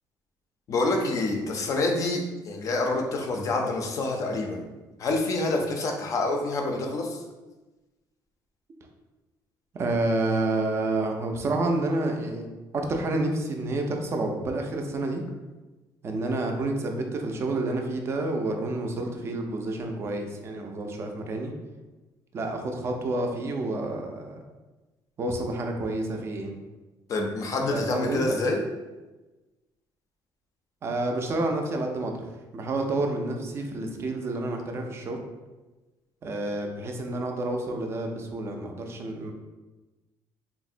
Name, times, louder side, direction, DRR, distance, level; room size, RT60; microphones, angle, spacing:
voice 1, 0.7-4.6 5.0-7.2 27.1-28.6, left 2 dB, 40° left, 2 dB, 0.4 m, -27 dB
voice 2, 9.7-12.5 12.7-15.2 16.0-21.5 22.3-24.4 25.2-26.5 27.7-28.4 30.8-32.2 32.5-35.2 36.2-39.3, right 2 dB, 30° right, 3 dB, 0.3 m, -29 dB
3.5 x 2.0 x 2.5 m, 1.2 s
cardioid pair, 160°, 9 cm